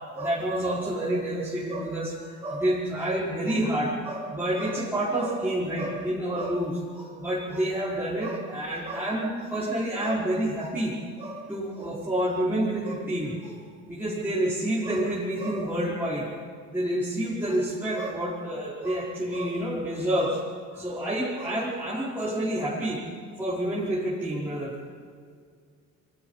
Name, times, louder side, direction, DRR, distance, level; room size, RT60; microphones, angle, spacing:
voice 1, 0.1-13.6 13.9-16.3 16.7-20.4 20.7-23.0 23.4-24.7, right 1 dB, 5° right, -10 dB, 4.8 m, -28 dB
28.5 x 23.5 x 4.1 m, 2.1 s
cardioid pair, 125°, 29 cm